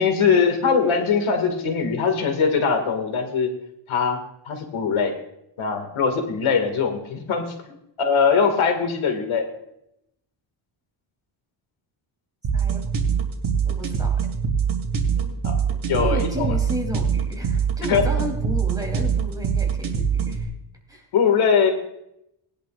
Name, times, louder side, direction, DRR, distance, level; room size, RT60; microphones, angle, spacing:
voice 1, 0.0-3.5 3.9-4.2 4.5-5.1 5.6-7.5 8.0-9.5 15.2-15.6 15.9-16.5 17.9-18.1 21.1-21.7, left 6 dB, 70° left, 5 dB, 2.2 m, -21 dB
sound 1, 12.4-20.4, right 6 dB, 65° right, 2.7 m, -23 dB
voice 2, 13.6-14.3 16.0-20.5 20.9-21.1, equal, 5° right, 1 dB, 3.0 m, -33 dB
19.5 x 10.5 x 2.5 m, 0.80 s
cardioid pair, 135°, 50 cm